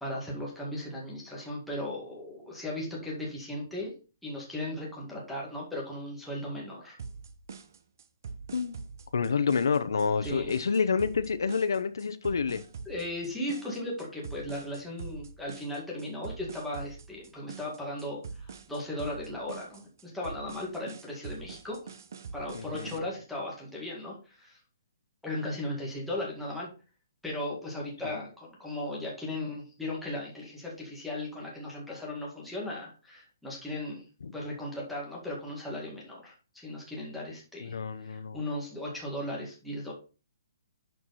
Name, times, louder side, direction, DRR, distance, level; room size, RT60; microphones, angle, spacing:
voice 1, 0.0-3.9 4.2-7.0 10.2-10.5 12.9-21.9 22.3-24.6 25.2-26.7 27.2-34.1 34.3-37.7 38.0-39.9, left 1 dB, ahead, -5 dB, 2.0 m, -37 dB
sound 1, 7.0-23.0, right 5 dB, 55° right, 1.0 m, -44 dB
voice 2, 8.5-8.8 9.1-12.6 22.5-23.0 28.0-28.2 34.2-34.3 37.6-38.4, left 5 dB, 85° left, 10 dB, 0.9 m, -28 dB
11.0 x 4.8 x 4.2 m, 0.34 s
hypercardioid pair, 175°, 2 cm